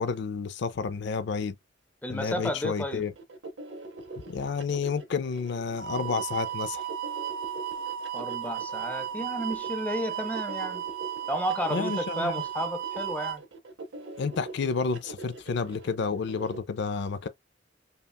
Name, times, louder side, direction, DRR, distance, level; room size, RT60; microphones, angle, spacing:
voice 1, 0.0-1.6 2.1-3.1 4.3-6.9 11.7-12.4 14.2-17.3, left 5 dB, 65° left, 0.4 m, -30 dB
voice 2, 2.0-3.1 8.1-10.8 11.3-13.4, equal, 10° left, 0.6 m, -32 dB
sound 1, 2.9-16.6, right 2 dB, 65° right, 0.8 m, -44 dB
sound 2, 5.8-13.4, right 11 dB, 50° right, 0.4 m, -34 dB
5.4 x 2.3 x 2.3 m
head